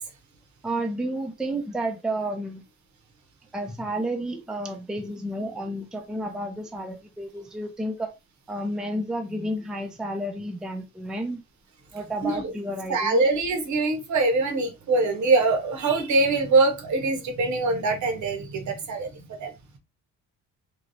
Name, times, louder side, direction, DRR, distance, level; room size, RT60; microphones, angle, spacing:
voice 1, 0.6-2.6 3.5-8.1 8.5-11.4 11.9-13.2, right 1 dB, ahead, 0.5 m, -31 dB
voice 2, 12.9-19.5, right 3 dB, 60° right, 1.0 m, -23 dB
3.1 x 2.3 x 2.6 m
cardioid pair, 90°, 33 cm